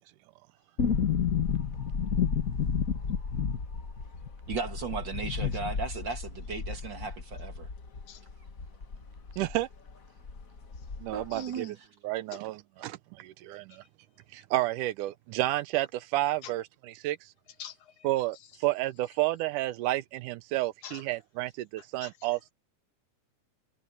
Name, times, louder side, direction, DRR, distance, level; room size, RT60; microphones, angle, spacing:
sound 1, 0.8-9.6 9.9-10.0 10.2-11.3 11.5-11.6, left 6 dB, 40° left, 1.2 m, -31 dB
voice 1, 4.5-7.7 11.1-11.8, right 4 dB, 40° right, 2.1 m, -36 dB
voice 2, 9.4-9.7 11.0-11.7 12.0-13.8 14.3-16.6 17.0-17.3 18.0-22.5, right 16 dB, 80° right, 2.1 m, -31 dB
voice 3, 11.3-11.7 12.3-12.4 13.7-13.8 16.4-16.5 17.6-18.5 20.8-21.0 22.0-22.1, left 9 dB, 70° left, 2.6 m, -47 dB
omnidirectional pair, 3.7 m